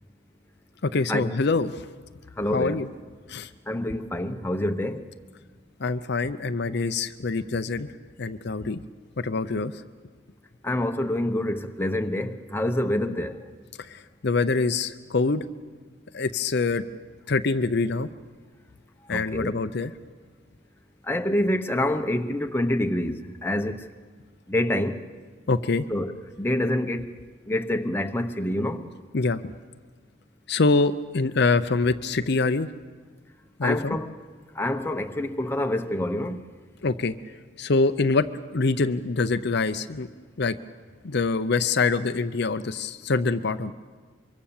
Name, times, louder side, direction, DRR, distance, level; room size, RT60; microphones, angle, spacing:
voice 1, 0.8-1.8 2.5-2.9 3.3-3.5 5.8-7.9 8.2-8.8 9.2-9.7 13.9-15.4 16.1-16.8 17.3-18.1 19.1-19.9 25.5-25.8 29.1-29.4 30.5-32.7 33.6-34.0 36.8-37.1 37.6-40.1 40.4-40.5 41.0-43.7, left 3 dB, 55° left, 0.6 m, -25 dB
voice 2, 2.4-2.8 3.7-5.0 10.6-13.4 19.1-19.6 21.0-23.9 24.5-25.0 25.9-27.1 27.5-28.8 33.6-34.1 34.6-36.4, left 1 dB, 10° left, 0.9 m, -27 dB
24.0 x 23.5 x 7.2 m
head